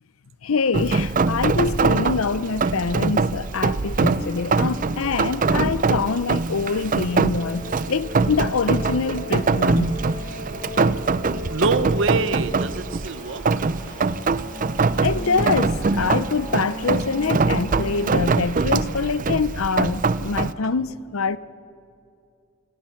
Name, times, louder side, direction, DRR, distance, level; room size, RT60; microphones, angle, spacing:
voice 1, 0.4-10.0 15.0-21.4, left 4 dB, 80° left, 0.7 m, -25 dB
Rain, 0.7-20.5, right 4 dB, 40° right, 0.5 m, -23 dB
sound 1, 3.8-18.1, left 1 dB, 35° left, 7.9 m, -38 dB
voice 2, 11.5-14.0, right 3 dB, 60° right, 1.0 m, -26 dB
29.0 x 22.0 x 5.9 m
head